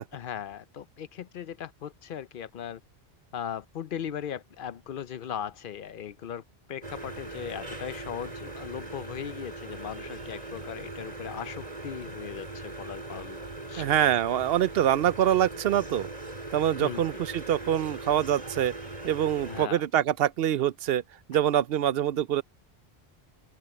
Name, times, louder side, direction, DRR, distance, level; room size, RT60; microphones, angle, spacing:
voice 1, 0.1-2.8 3.3-6.4 6.7-13.9 16.8-17.0 19.5-19.8, left 9 dB, 60° left, 0.8 m, -38 dB
sound 1, 6.8-19.7, right 2 dB, 40° right, 4.2 m, -40 dB
voice 2, 13.8-16.1 16.5-18.7 19.0-21.0 21.3-22.4, right 11 dB, 70° right, 0.8 m, -25 dB
open air
omnidirectional pair, 1.1 m